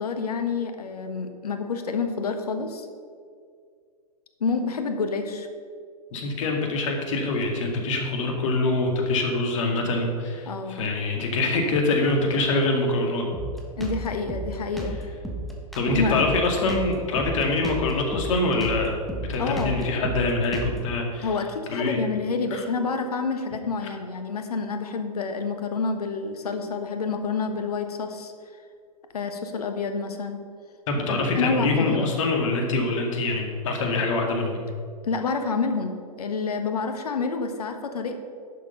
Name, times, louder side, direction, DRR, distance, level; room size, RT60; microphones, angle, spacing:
voice 1, 0.0-2.9 4.4-5.5 10.5-10.9 13.8-15.0 15.9-16.3 19.4-19.8 21.2-28.3 29.1-30.4 31.1-32.1 35.0-35.9 36.2-38.1, left 4 dB, 70° left, 7 dB, 1.3 m, -28 dB
voice 2, 6.1-13.2 15.8-18.9 19.2-21.3 21.7-22.0 22.5-22.6 30.9-34.7, left 2 dB, 55° left, 2 dB, 2.1 m, -24 dB
Drum kit, 13.3-21.0, right 1 dB, ahead, 1.5 m, -33 dB
11.0 x 6.9 x 5.4 m, 2.1 s
figure-of-eight pair, 110°, 20 cm